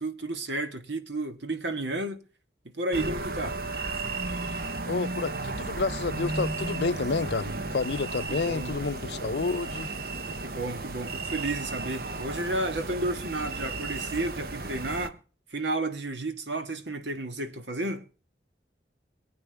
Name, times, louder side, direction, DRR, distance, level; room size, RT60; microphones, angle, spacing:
voice 1, 0.0-2.2 2.7-3.6 8.3-8.9 10.4-15.2 15.5-18.0, right 2 dB, 85° right, 1.7 m, -32 dB
sound 1, 2.9-15.1, right 3 dB, 55° right, 0.9 m, -34 dB
voice 2, 4.9-9.9, left 4 dB, 70° left, 0.6 m, -30 dB
25.0 x 8.7 x 3.4 m
head